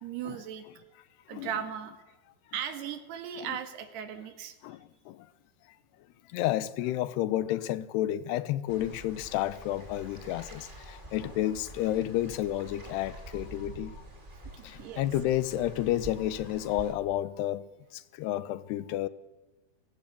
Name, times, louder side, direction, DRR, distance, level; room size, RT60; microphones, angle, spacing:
voice 1, 0.0-0.8 1.3-1.9 2.5-4.6 14.5-15.1, right 9 dB, 80° right, 3.8 m, -37 dB
voice 2, 6.3-13.9 14.6-17.7 18.2-19.1, left 13 dB, 85° left, 3.0 m, -30 dB
sound 1, 8.7-16.9, right 1 dB, 15° right, 2.4 m, -47 dB
28.0 x 17.0 x 8.6 m
omnidirectional pair, 4.6 m